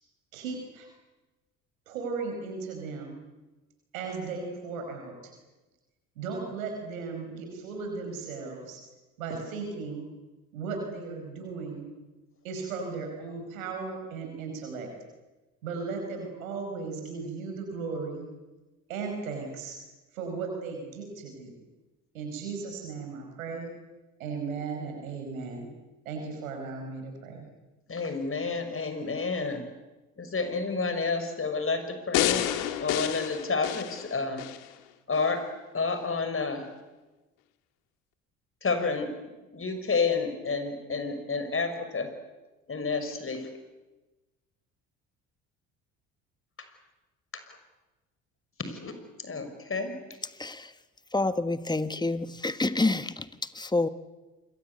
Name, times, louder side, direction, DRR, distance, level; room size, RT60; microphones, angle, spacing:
voice 1, 0.3-0.9 1.9-3.2 3.9-5.3 6.1-8.8 9.2-10.0 10.5-11.9 12.4-14.9 15.6-18.3 18.9-19.8 20.1-21.6 22.1-23.7 24.2-25.7 26.0-27.5, right 4 dB, 85° right, 3 dB, 5.2 m, -36 dB
voice 2, 27.9-29.6 30.2-32.4 32.8-34.4 35.1-35.4 35.7-36.6 38.6-39.1 39.5-42.1 42.7-43.5 48.6-48.9 49.2-49.9, left 4 dB, 30° left, 8 dB, 6.1 m, -30 dB
sound 1, 32.1-34.6 35.1-35.2, left 13 dB, 75° left, 1.9 m, -29 dB
voice 3, 50.3-50.7 51.1-53.9, left 2 dB, 10° left, 12 dB, 1.5 m, -28 dB
27.5 x 22.5 x 8.3 m, 1.1 s
hypercardioid pair, 60°, 40 cm